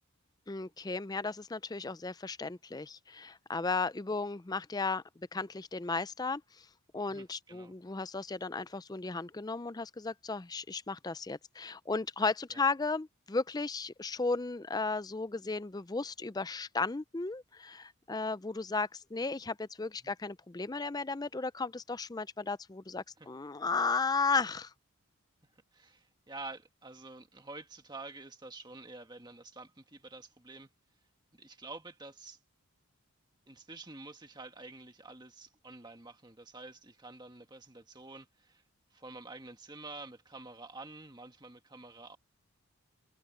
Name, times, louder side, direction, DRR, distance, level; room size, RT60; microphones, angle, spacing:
voice 1, 0.5-5.0 5.3-6.7 6.9-24.7, left 4 dB, 15° left, 0.4 m, -35 dB
voice 2, 7.1-7.7 12.5-12.6 20.0-20.1 23.2-23.3 25.7-30.7 31.3-32.4 33.5-38.6 38.9-42.2, right 3 dB, 20° right, 1.6 m, -48 dB
head